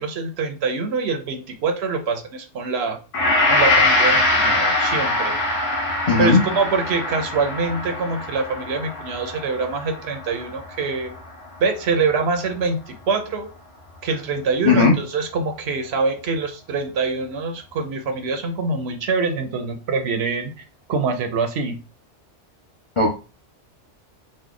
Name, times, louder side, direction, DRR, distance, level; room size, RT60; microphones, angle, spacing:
voice 1, 0.0-3.0 3.5-5.4 6.2-11.1 11.6-13.5 14.0-20.5 20.9-21.8, right 4 dB, 65° right, 6 dB, 0.8 m, -24 dB
Gong, 3.1-11.6 11.9-12.1, left 2 dB, 80° left, 1.1 m, -23 dB
voice 2, 6.1-6.4 14.6-15.0 23.0-23.1, left 4 dB, 35° left, 0 dB, 0.5 m, -15 dB
3.1 x 2.0 x 3.7 m, 0.32 s
omnidirectional pair, 1.2 m